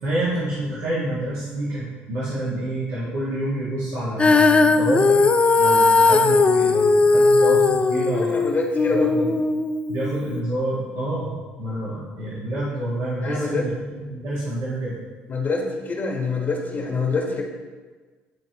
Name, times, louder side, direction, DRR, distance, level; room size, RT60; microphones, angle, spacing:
voice 1, 0.0-5.3 5.6-8.4 8.9-9.3 9.9-11.3 11.6-15.0, right 1 dB, 75° right, -9 dB, 1.7 m, -27 dB
Female singing, 4.2-10.4, left 3 dB, 25° left, 0.4 m, -18 dB
voice 2, 8.1-9.3 13.2-13.7 15.3-17.4, left 4 dB, 40° left, 0 dB, 1.4 m, -25 dB
10.5 x 3.6 x 2.9 m, 1.4 s
supercardioid pair, 65°, 5 cm